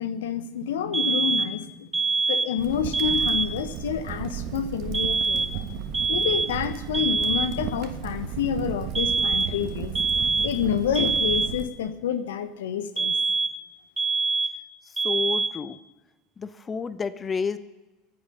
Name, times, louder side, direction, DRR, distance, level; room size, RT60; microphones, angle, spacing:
voice 1, 0.0-1.9 2.3-5.6 6.1-9.9 10.4-13.1, left 8 dB, 75° left, 12 dB, 1.0 m, -28 dB
sound 1, 0.9-1.6 1.9-2.6 2.9-3.6 4.9-5.6 5.9-6.6 6.9-7.6 9.0-9.6 10.0-10.6 11.0-11.6 13.0-13.6 14.0-14.6 15.0-15.6, right 4 dB, 15° right, 1.1 m, -25 dB
Crackle, 2.6-11.6, right 8 dB, 60° right, 1.4 m, -34 dB
voice 2, 15.0-15.8 16.4-17.6, left 5 dB, 25° left, 14 dB, 0.8 m, -30 dB
24.0 x 8.0 x 5.4 m, 1.1 s
hypercardioid pair, 75°, 0 cm